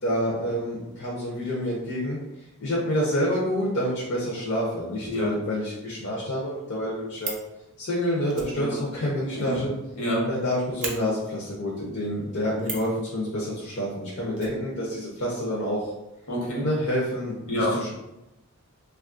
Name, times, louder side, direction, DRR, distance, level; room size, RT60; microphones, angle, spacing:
voice 1, 0.0-7.4 7.8-9.7 10.2-15.9 16.6-17.9, equal, 55° left, -6 dB, 0.6 m, -28 dB
Fire, 6.8-7.5 8.3-10.1 10.3-10.4 10.8-10.9 12.6-12.9 14.4-15.2 15.5-15.6 15.8-15.9, right 4 dB, 35° right, 0.5 m, -36 dB
voice 2, 10.0-10.3 16.3-16.6 17.5-17.8, equal, 80° left, -4 dB, 1.1 m, -27 dB
3.2 x 2.3 x 2.4 m, 0.92 s
head